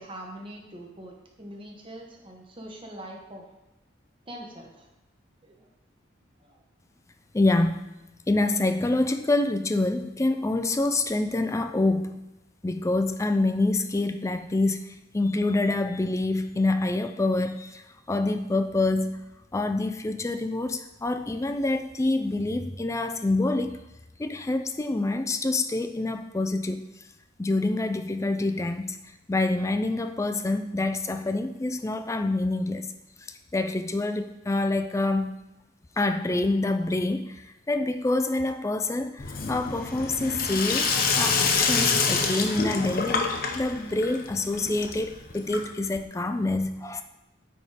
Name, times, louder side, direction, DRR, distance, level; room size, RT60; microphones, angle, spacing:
voice 1, 0.0-3.4 4.3-4.9 5.4-5.7 6.4-6.6, right 1 dB, 25° right, 1 dB, 1.0 m, -43 dB
voice 2, 7.3-7.9 8.3-12.3 12.6-19.2 19.5-23.8 24.2-26.9 27.4-29.0 29.3-32.9 33.3-35.4 36.0-43.3 43.5-47.0, left 2 dB, 15° left, 8 dB, 0.3 m, -26 dB
Sink (filling or washing), 39.2-46.0, left 4 dB, 50° left, 0.7 m, -27 dB
9.1 x 3.6 x 4.0 m, 0.98 s
head